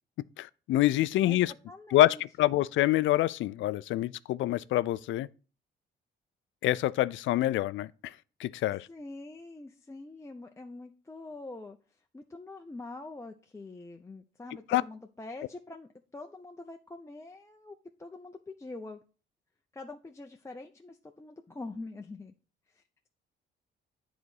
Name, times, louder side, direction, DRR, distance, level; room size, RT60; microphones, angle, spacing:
voice 1, 0.4-1.5 1.9-5.3 6.6-7.9 8.4-8.9 14.7-14.8, left 15 dB, 75° left, 0.4 m, -26 dB
voice 2, 1.7-2.2 8.9-11.8 12.1-19.0 19.7-22.3 22.7-23.1, left 2 dB, 15° left, 0.6 m, -45 dB
8.6 x 4.0 x 4.8 m
cardioid pair, 90°, 20 cm